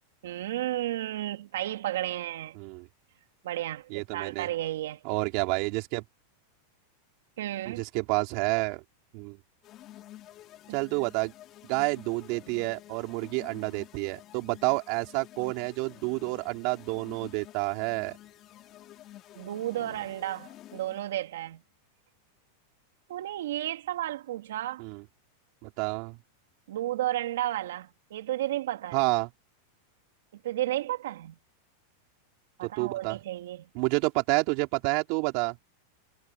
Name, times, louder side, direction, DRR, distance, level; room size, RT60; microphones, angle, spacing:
voice 1, 0.2-2.6 3.4-5.0 7.4-7.8 10.7-10.8 19.4-21.6 23.1-24.8 26.7-29.0 30.4-31.4 32.6-33.7, right 14 dB, 80° right, 2.6 m, -33 dB
voice 2, 2.5-2.9 3.9-4.5 5.0-6.0 7.7-8.8 9.1-9.4 10.7-11.3 11.6-18.2 24.8-25.0 25.6-26.2 28.9-29.3 32.6-33.2 33.7-35.6, right 28 dB, 50° right, 4.5 m, -29 dB
sound 1, 9.6-21.2, left 14 dB, 35° left, 4.9 m, -50 dB
supercardioid pair, 140°, 0 cm